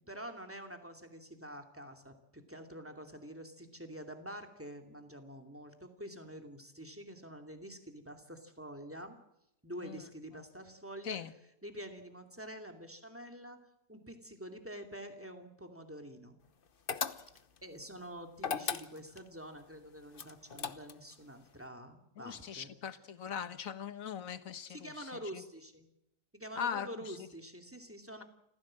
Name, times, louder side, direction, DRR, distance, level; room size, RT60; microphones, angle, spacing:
voice 1, 0.1-9.2 9.6-11.2 11.6-13.6 13.9-16.4 17.6-22.7 24.7-25.9 26.3-28.2, equal, 10° right, 5 dB, 2.6 m, -47 dB
sound 1, 16.9-17.6 18.4-19.3 20.2-21.1, left 6 dB, 40° left, 1.0 m, -37 dB
voice 2, 22.2-25.4 26.6-27.3, left 8 dB, 60° left, 12 dB, 1.5 m, -41 dB
28.0 x 15.5 x 7.6 m, 0.84 s
omnidirectional pair, 1.7 m